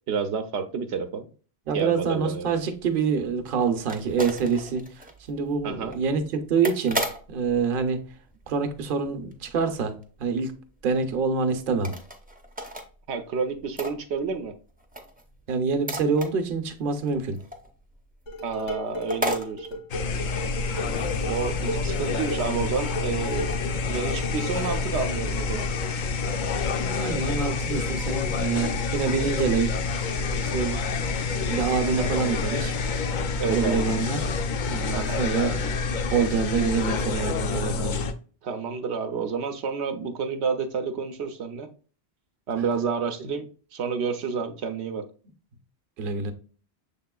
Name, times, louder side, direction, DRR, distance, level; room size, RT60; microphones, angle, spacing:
voice 1, 0.1-1.3 1.7-2.5 5.6-6.0 13.1-14.5 18.4-19.8 20.7-20.8 21.2-23.6 23.9-25.7 31.8-32.1 33.4-33.8 34.9-35.2 38.4-41.7 42.5-45.1, right 5 dB, 80° right, 0.9 m, -30 dB
voice 2, 1.7-7.0 7.3-8.0 8.5-10.5 10.8-11.9 15.5-17.4 26.8-30.1 30.4-30.8 31.4-32.8 33.5-34.2 34.6-35.7 36.1-38.0 46.0-46.3, right 5 dB, 55° right, 0.8 m, -26 dB
sound 1, 2.4-9.1 9.3-9.8 10.0-10.1 10.4-10.5 10.9-11.0 11.7-12.9 13.1-14.5 14.8-18.0 18.4-18.5 18.7-18.8 19.1-19.5, equal, 10° right, 0.4 m, -35 dB
Dishes pots and pans, 18.3-24.9, equal, 80° left, 1.6 m, -36 dB
sound 2, 19.9-38.1, left 4 dB, 60° left, 0.5 m, -28 dB
6.5 x 3.6 x 2.2 m
omnidirectional pair, 1.1 m